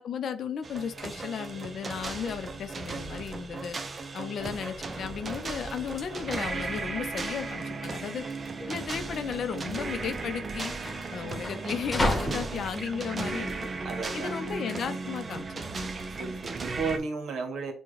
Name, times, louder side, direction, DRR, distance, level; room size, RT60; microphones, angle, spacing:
voice 1, 0.0-3.8 4.1-8.2 8.7-10.7 11.1-13.7 14.1-15.9, left 7 dB, 60° left, 9 dB, 0.6 m, -35 dB
sound 1, 0.6-17.0, right 3 dB, 35° right, 0.6 m, -36 dB
sound 2, 4.5-14.5, left 1 dB, 10° left, 1.2 m, -36 dB
voice 2, 12.1-12.6 13.8-14.4 16.2-17.7, right 4 dB, 65° right, 6 dB, 1.1 m, -34 dB
6.9 x 2.3 x 3.2 m, 0.43 s
cardioid pair, 90°, 0 cm